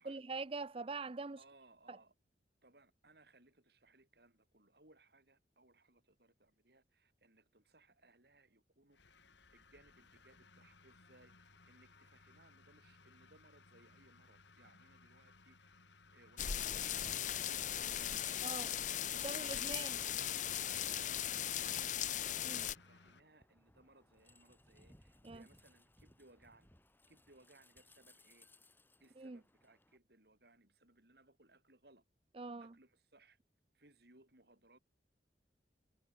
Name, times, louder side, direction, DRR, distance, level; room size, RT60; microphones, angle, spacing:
voice 1, 0.0-1.4 1.9-2.0 18.4-18.7 19.2-20.0 22.4-22.7 25.2-25.5 29.2-29.4 32.3-32.8, right 3 dB, 30° right, 0.6 m, -44 dB
voice 2, 1.4-2.1 2.6-9.2 9.5-15.9 16.1-16.8 17.2-18.7 19.2-20.3 20.9-26.7 27.1-28.5 29.0-32.0 32.6-33.4 33.7-34.8, right 2 dB, 60° right, 4.8 m, -66 dB
sound 1, 8.9-23.2, left 3 dB, 80° left, 3.4 m, -64 dB
sound 2, 16.4-22.8, left 10 dB, 45° left, 0.7 m, -38 dB
sound 3, 22.5-30.0, left 1 dB, 10° left, 4.5 m, -66 dB
head